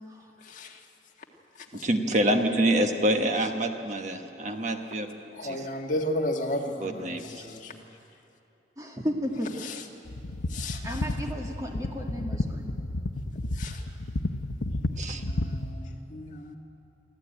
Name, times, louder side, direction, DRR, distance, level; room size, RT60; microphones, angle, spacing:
voice 1, 0.4-0.8 1.6-1.9 4.4-4.6 5.3-7.8 9.6-9.8 10.5-11.0 13.5-13.8 15.1-16.6, left 1 dB, 45° left, 1 dB, 1.8 m, -34 dB
voice 2, 1.7-5.1 5.4-5.6 6.8-7.3 15.0-15.2, right 1 dB, 40° right, 5 dB, 1.3 m, -26 dB
voice 3, 8.8-9.5 10.8-12.7, equal, 20° right, 1 dB, 2.0 m, -33 dB
sound 1, 10.1-15.7, left 2 dB, 80° left, 0.9 m, -32 dB
23.5 x 14.0 x 9.1 m, 2.8 s
head